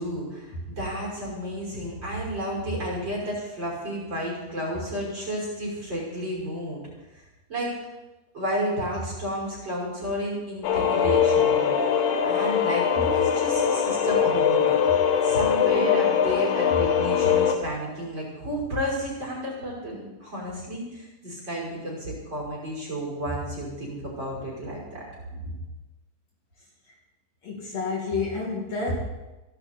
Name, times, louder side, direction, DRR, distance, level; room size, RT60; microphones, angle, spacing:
voice 1, 0.0-6.8 7.1-7.2 7.5-7.8 8.3-11.7 12.2-25.0, equal, 30° right, -4 dB, 6.4 m, -32 dB
sound 1, 10.6-17.5, left 8 dB, 80° left, 3.1 m, -22 dB
voice 2, 27.4-29.0, left 3 dB, 50° left, -2 dB, 3.4 m, -30 dB
27.0 x 11.5 x 4.4 m, 1.1 s
omnidirectional pair, 4.0 m